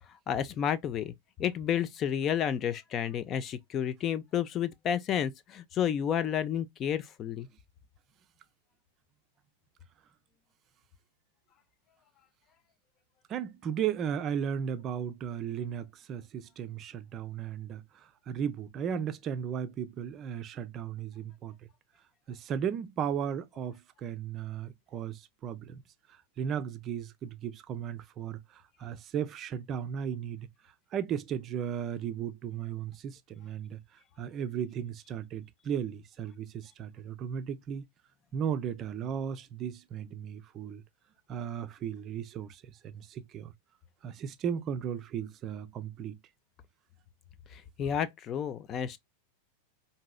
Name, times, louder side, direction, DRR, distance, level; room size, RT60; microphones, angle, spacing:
voice 1, 0.3-1.1 1.4-7.5 47.5-49.0, left 9 dB, 30° left, 0.4 m, -31 dB
voice 2, 13.3-21.5 22.3-25.8 26.1-30.5 30.9-33.8 34.2-37.8 38.3-40.8 41.3-43.5 44.0-46.2, right 8 dB, 30° right, 0.5 m, -35 dB
4.7 x 2.7 x 2.2 m
figure-of-eight pair, 90°, 0 cm